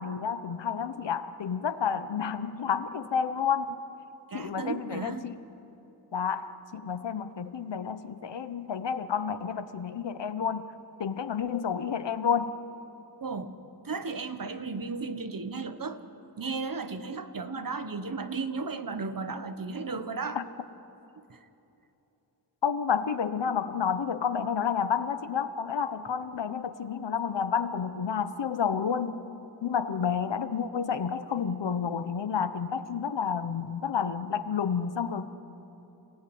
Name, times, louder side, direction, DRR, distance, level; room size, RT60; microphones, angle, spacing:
voice 1, 0.0-3.8 4.3-5.3 6.1-10.7 11.0-12.5 20.4-20.5 22.6-29.2 29.6-35.3, left 7 dB, 80° left, 11 dB, 1.1 m, -30 dB
voice 2, 4.3-5.3 13.2-13.6 13.8-16.0 16.4-20.4 21.1-21.5, right 4 dB, 50° right, 10 dB, 1.4 m, -35 dB
29.5 x 17.0 x 9.6 m, 3.0 s
wide cardioid pair, 90°, 42 cm